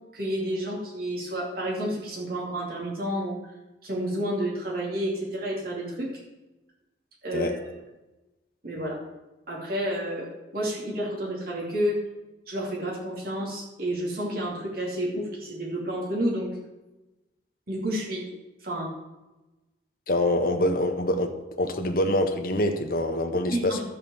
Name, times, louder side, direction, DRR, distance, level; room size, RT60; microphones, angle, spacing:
voice 1, 0.1-3.4 3.8-6.2 7.2-7.6 8.6-9.0 9.5-10.3 10.5-12.0 12.5-16.5 17.7-18.2 18.6-18.9 23.5-23.8, right 1 dB, 55° right, -4 dB, 2.8 m, -30 dB
voice 2, 20.1-21.3 21.6-23.8, left 1 dB, 55° left, 5 dB, 1.1 m, -25 dB
13.0 x 5.0 x 7.1 m, 1.1 s
head